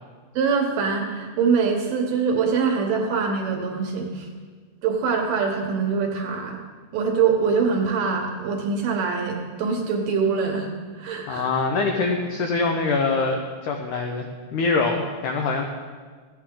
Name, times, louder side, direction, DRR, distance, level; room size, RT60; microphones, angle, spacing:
voice 1, 0.4-4.3 4.8-6.6 6.9-10.7 10.9-11.6, right 5 dB, 70° right, 2 dB, 2.3 m, -24 dB
voice 2, 11.3-15.6, left 3 dB, 90° left, 2 dB, 1.7 m, -24 dB
14.5 x 9.3 x 3.7 m, 1.5 s
omnidirectional pair, 4.6 m